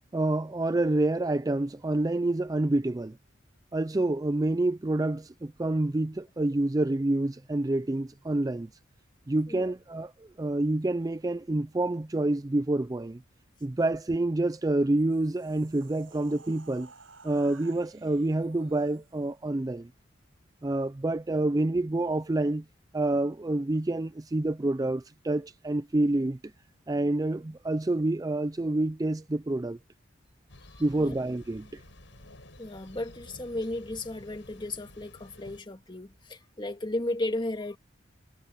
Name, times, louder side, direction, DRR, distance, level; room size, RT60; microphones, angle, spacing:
voice 1, 0.1-3.2 3.7-8.7 9.3-13.2 13.6-16.9 17.2-19.9 20.6-22.6 22.9-26.4 26.9-29.8 30.8-31.8, right 2 dB, 20° right, 0.4 m, -28 dB
sound 1, 14.8-19.4, right 4 dB, 85° right, 6.6 m, -55 dB
Thunder, 30.5-35.6, left 1 dB, 70° left, 6.9 m, -51 dB
voice 2, 30.7-31.2 32.6-37.8, left 1 dB, 25° left, 2.0 m, -34 dB
head